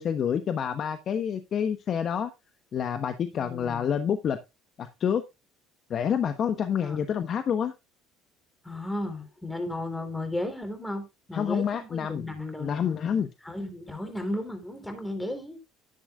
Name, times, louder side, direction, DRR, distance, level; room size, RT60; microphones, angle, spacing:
voice 1, 0.0-2.3 2.7-4.4 4.8-5.2 5.9-7.7 11.3-12.2 12.5-13.3, left 8 dB, 50° left, 1.0 m, -28 dB
voice 2, 3.3-3.9 6.8-7.0 8.6-11.0 11.3-12.9 13.4-15.6, left 1 dB, 10° left, 3.7 m, -34 dB
11.5 x 10.0 x 2.4 m
hypercardioid pair, 70°, 0 cm